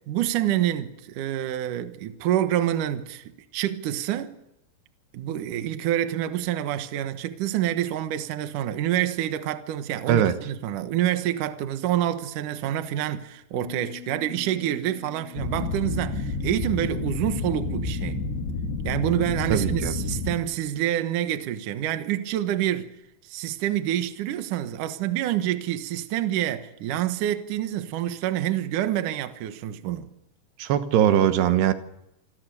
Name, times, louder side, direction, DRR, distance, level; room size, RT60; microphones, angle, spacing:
voice 1, 0.1-4.4 5.1-18.2 18.8-22.9 23.2-30.1, right 12 dB, 65° right, 2.4 m, -27 dB
Bass guitar, 13.5-19.8, left 9 dB, 45° right, 4.0 m, -48 dB
sound 1, 15.4-20.3, left 3 dB, 80° left, 5.9 m, -29 dB
voice 2, 19.5-19.9 30.6-31.7, right 10 dB, 80° right, 3.3 m, -21 dB
27.0 x 23.5 x 7.0 m
omnidirectional pair, 4.8 m